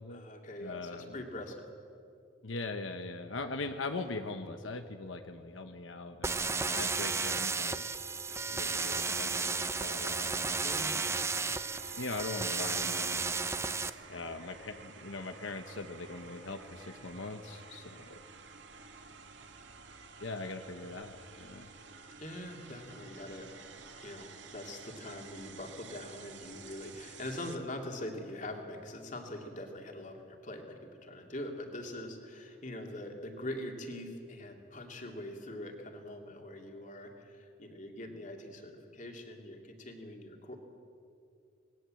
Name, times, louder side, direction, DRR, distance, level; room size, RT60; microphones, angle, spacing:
voice 1, 0.1-1.7 10.6-10.9 22.2-40.6, left 1 dB, 40° left, 2 dB, 2.9 m, -43 dB
voice 2, 0.6-1.2 2.4-6.3 6.7-7.8 8.5-9.5 9.8-10.5 12.0-13.3 14.1-18.2 20.2-21.7, left 3 dB, 85° left, 7 dB, 1.2 m, -41 dB
sound 1, 6.2-13.9, right 4 dB, 15° right, 0.6 m, -33 dB
sound 2, 8.3-27.5, right 4 dB, 65° right, 2.1 m, -52 dB
26.5 x 20.0 x 7.8 m, 2.5 s
head